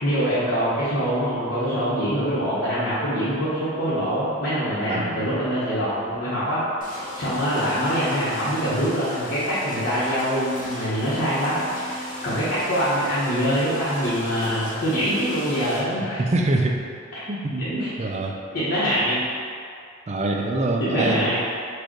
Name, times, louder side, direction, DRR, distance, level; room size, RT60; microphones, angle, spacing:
voice 1, 0.0-12.0 12.2-16.2 17.6-18.1 18.5-19.2 20.8-21.4, equal, 60° left, -12 dB, 1.2 m, -24 dB
voice 2, 4.9-5.3 16.0-16.8 17.3-17.7 18.0-18.4 20.1-21.3, right 2 dB, 35° right, 1 dB, 0.4 m, -24 dB
sound 1, 6.8-15.8, left 1 dB, 45° left, 0.8 m, -36 dB
4.9 x 2.4 x 4.5 m, 2.4 s
head